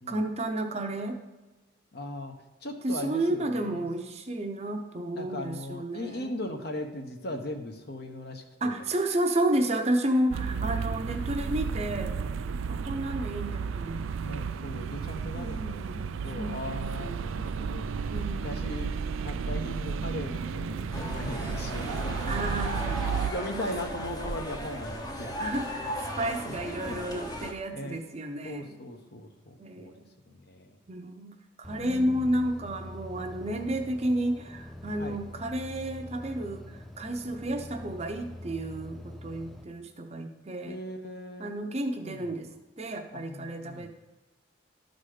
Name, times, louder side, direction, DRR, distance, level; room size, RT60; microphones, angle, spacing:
voice 1, 0.1-1.2 2.8-6.3 8.6-12.1 12.7-14.5 15.4-17.3 18.1-18.7 22.3-23.7 25.4-28.7 29.6-30.1 30.9-40.8 41.4-42.5 42.8-43.9, right 1 dB, 30° right, 4 dB, 0.7 m, -32 dB
voice 2, 1.9-3.9 5.1-8.8 10.5-10.7 14.2-17.9 18.3-18.9 19.2-22.6 23.2-25.3 26.5-27.2 27.7-28.0 28.4-29.9 30.3-30.8 31.8-32.2 35.0-35.2 40.6-41.5 42.0-42.3 43.1-43.9, left 1 dB, 50° left, 5 dB, 0.9 m, -39 dB
sound 1, 10.3-23.3, right 5 dB, 80° right, 0.4 m, -33 dB
sound 2, 20.9-27.5, equal, 20° left, 0.8 m, -36 dB
sound 3, 31.6-39.6, left 1 dB, ahead, 0.4 m, -44 dB
12.5 x 4.2 x 4.9 m, 1.2 s
head